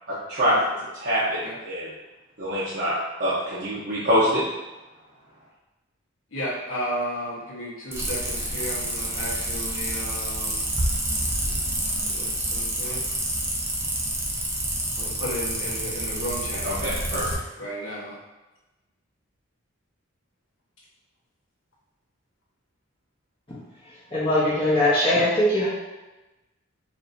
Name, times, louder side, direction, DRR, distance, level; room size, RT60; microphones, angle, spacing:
voice 1, 0.1-0.6 0.9-1.9 2.4-2.9 3.2-4.5 16.6-17.3, equal, 55° right, -11 dB, 0.9 m, -25 dB
voice 2, 6.3-10.7 12.0-13.0 15.0-16.7 17.6-18.2, equal, 75° left, -5 dB, 1.2 m, -33 dB
sound 1, 7.9-17.3, right 1 dB, 15° right, 0.6 m, -28 dB
voice 3, 24.1-25.7, left 1 dB, 25° left, -11 dB, 1.0 m, -21 dB
4.9 x 2.7 x 2.6 m, 1.1 s
head